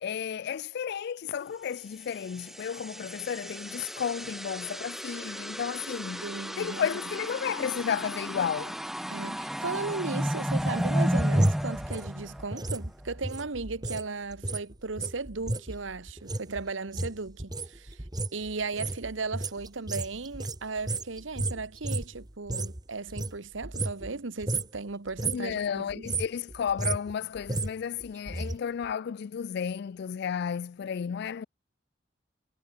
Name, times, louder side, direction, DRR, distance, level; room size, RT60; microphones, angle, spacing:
voice 1, 0.0-6.2 6.6-8.7 25.2-31.4, left 7 dB, 60° left, 0.3 m, -33 dB
sound 1, 2.1-12.8, equal, ahead, 0.7 m, -33 dB
voice 2, 6.2-7.0 9.1-18.0 18.3-26.1, right 3 dB, 80° right, 1.2 m, -36 dB
sound 2, 10.5-14.1 14.3-22.8 23.1-24.2 24.4-24.8 25.1-25.5 25.9-28.5 28.8-28.9, right 2 dB, 20° right, 1.5 m, -33 dB
head